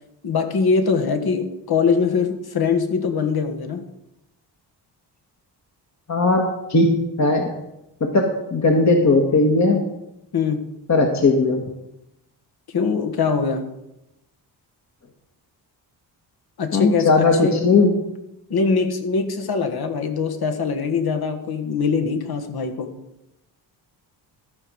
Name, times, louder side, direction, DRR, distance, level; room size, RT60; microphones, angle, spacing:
voice 1, 0.2-3.8 10.3-10.7 12.7-13.7 16.6-17.6 18.5-22.9, left 5 dB, 60° left, 6 dB, 1.5 m, -22 dB
voice 2, 6.1-6.4 6.7-6.9 7.2-7.5 8.0-9.8 10.9-11.6 16.7-17.9, left 3 dB, 40° left, 2 dB, 1.6 m, -17 dB
13.5 x 5.3 x 6.3 m, 0.89 s
cardioid pair, 70°, 43 cm